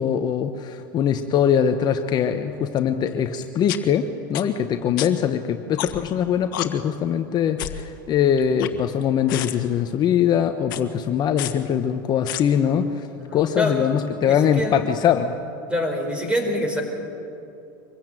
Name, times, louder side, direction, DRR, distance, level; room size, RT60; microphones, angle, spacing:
voice 1, 0.0-13.1 13.3-15.4, left 8 dB, 40° left, 7 dB, 1.0 m, -22 dB
sound 1, 2.8-2.9 3.7-3.8 4.3-4.4 5.0-5.1 5.8-6.1 6.5-6.7 7.6-7.8 8.4-9.0 9.3-9.5 10.6-10.8 11.4-11.5 12.3-12.4, left 15 dB, 70° left, 1.4 m, -29 dB
voice 2, 13.2-14.7 15.7-16.8, left 1 dB, 10° right, 4 dB, 4.4 m, -26 dB
24.5 x 15.0 x 9.0 m, 2.8 s
supercardioid pair, 110°, 11 cm